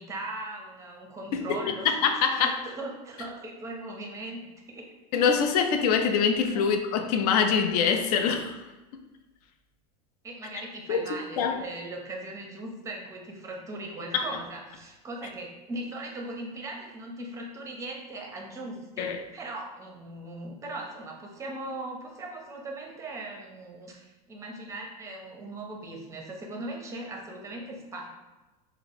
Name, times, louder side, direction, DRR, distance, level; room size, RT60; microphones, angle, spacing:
voice 1, 0.0-4.9 6.5-6.8 10.2-28.1, right 2 dB, 15° right, 1 dB, 0.5 m, -39 dB
voice 2, 1.8-2.5 5.1-8.6 8.9-9.0 10.9-11.1 11.4-11.5 14.1-14.2 19.0-19.2, left 6 dB, 75° left, 6 dB, 0.4 m, -24 dB
2.8 x 2.0 x 4.1 m, 1.1 s
supercardioid pair, 140°, 20 cm